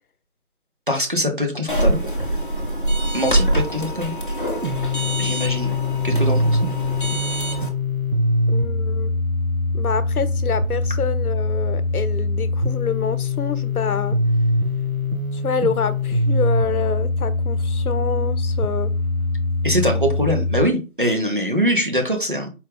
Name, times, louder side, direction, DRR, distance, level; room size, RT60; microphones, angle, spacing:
voice 1, 0.9-2.0 3.1-4.1 5.2-5.7 6.0-6.6 19.6-22.5, equal, 35° right, 0.7 m, -22 dB
sound 1, 1.7-7.7, right 1 dB, 35° left, 0.7 m, -24 dB
sound 2, 4.6-20.6, left 2 dB, 70° right, 0.9 m, -23 dB
voice 2, 8.5-9.1 9.7-14.2 15.3-18.9, left 6 dB, 80° left, 0.7 m, -27 dB
4.4 x 2.4 x 3.4 m
figure-of-eight pair, 170°, 43 cm